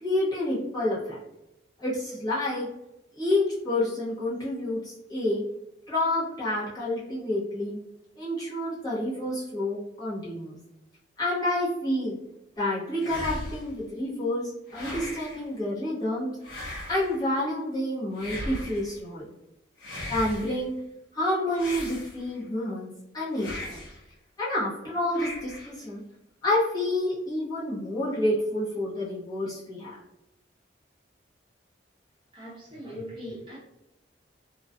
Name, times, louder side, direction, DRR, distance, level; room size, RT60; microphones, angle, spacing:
voice 1, 0.0-1.2 1.8-2.7 3.1-5.4 5.9-7.8 8.2-10.6 11.2-12.2 12.6-16.3 16.9-19.3 20.1-20.7 21.1-23.8 24.4-26.0 26.4-30.0, left 1 dB, 20° left, -8 dB, 0.8 m, -29 dB
sound 1, 13.0-13.8 14.7-15.5 16.4-17.2 18.2-18.9 19.8-20.6 21.5-22.4 23.3-24.0 25.1-25.8, left 1 dB, 55° left, 0.7 m, -38 dB
voice 2, 32.3-33.6, equal, 25° right, -7 dB, 0.9 m, -40 dB
2.5 x 2.2 x 2.3 m, 0.90 s
head